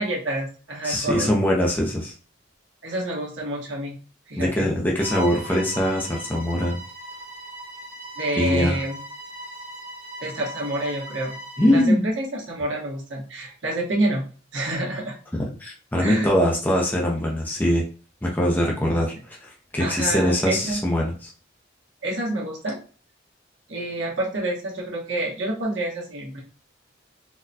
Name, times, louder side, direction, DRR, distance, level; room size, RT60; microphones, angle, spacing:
voice 1, 0.0-1.4 2.8-3.9 4.3-4.7 8.2-9.0 10.2-11.3 11.7-14.2 14.5-15.1 16.0-16.3 19.8-20.8 22.0-22.8 23.7-26.4, right 1 dB, 70° right, -2 dB, 1.2 m, -28 dB
voice 2, 0.8-2.1 4.4-6.8 8.4-8.8 11.6-12.0 15.6-17.8 18.2-21.3, left 1 dB, 10° left, -2 dB, 0.5 m, -22 dB
Bowed string instrument, 5.0-11.9, right 1 dB, 35° right, 1.2 m, -38 dB
4.0 x 2.2 x 2.7 m, 0.38 s
head